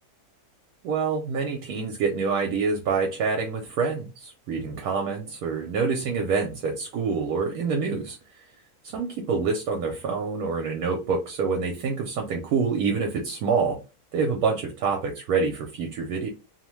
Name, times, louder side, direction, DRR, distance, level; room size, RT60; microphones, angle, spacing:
voice 1, 0.8-8.2 8.8-13.8 14.1-16.3, right 5 dB, 75° right, 2 dB, 1.0 m, -26 dB
2.8 x 2.0 x 3.0 m, 0.29 s
omnidirectional pair, 1.7 m